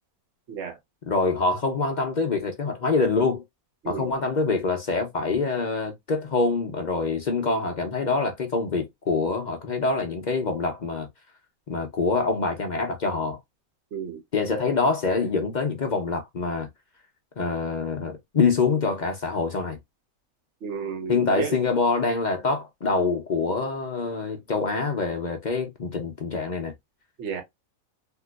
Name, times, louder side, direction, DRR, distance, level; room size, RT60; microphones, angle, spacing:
voice 1, 1.0-3.4 3.9-11.1 11.7-13.4 14.3-16.7 17.4-19.8 21.1-26.7, left 4 dB, 50° left, 0.5 m, -25 dB
voice 2, 20.6-21.5 27.2-27.4, right 7 dB, 55° right, 1.1 m, -32 dB
3.6 x 2.5 x 2.3 m
omnidirectional pair, 1.5 m